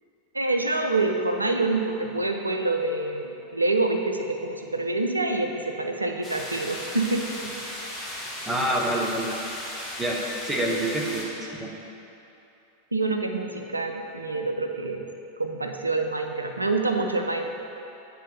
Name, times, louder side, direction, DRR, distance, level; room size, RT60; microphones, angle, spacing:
voice 1, 0.3-7.3 12.9-15.0 15.4-17.5, right 2 dB, 80° right, 4 dB, 0.4 m, -26 dB
sound 1, 6.2-11.2, left 1 dB, 10° left, 1.3 m, -36 dB
voice 2, 8.4-9.4 10.0-11.3 11.5-11.8, right 1 dB, 5° right, -2 dB, 0.9 m, -27 dB
8.3 x 4.2 x 4.1 m, 2.8 s
figure-of-eight pair, 90°, 0 cm